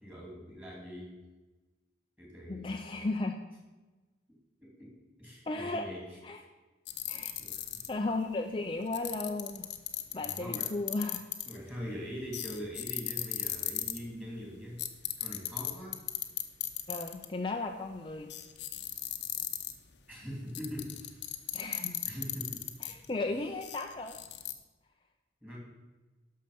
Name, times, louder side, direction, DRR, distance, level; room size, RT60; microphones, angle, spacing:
voice 1, 0.0-1.1 2.2-2.7 4.6-4.9 5.2-6.4 7.4-7.6 10.1-10.7 11.4-14.8 15.2-16.0 20.1-21.2 22.0-22.6 25.4-25.6, equal, 10° right, -3 dB, 3.2 m, -42 dB
voice 2, 2.5-3.4 5.5-5.9 6.2-6.4 7.1-7.3 7.9-9.7 10.1-11.2 16.9-18.3 21.5-22.0 22.8-24.2, left 2 dB, 30° left, 3 dB, 0.5 m, -35 dB
sound 1, 6.9-8.1 8.9-11.7 12.3-14.0 14.8-17.2 17.7-17.8 18.3-19.9 20.5-23.1 23.6-24.5, left 14 dB, 75° left, 0.9 m, -36 dB
11.5 x 6.6 x 5.2 m, 1.2 s
head